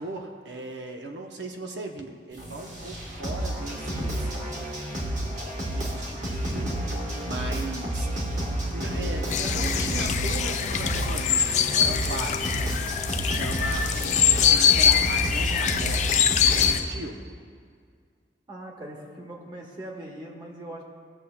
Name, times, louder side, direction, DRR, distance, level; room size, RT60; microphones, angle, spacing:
voice 1, 0.0-4.3 5.7-6.9 7.3-8.1 8.7-12.7 13.1-17.2, right 2 dB, 75° right, 3 dB, 0.8 m, -38 dB
sound 1, 2.4-16.7, right 1 dB, 40° right, 1.4 m, -30 dB
sound 2, 9.3-16.8, left 8 dB, 40° left, 0.3 m, -23 dB
voice 2, 18.5-20.8, right 1 dB, 25° right, -1 dB, 1.1 m, -40 dB
17.5 x 7.0 x 2.2 m, 2.1 s
head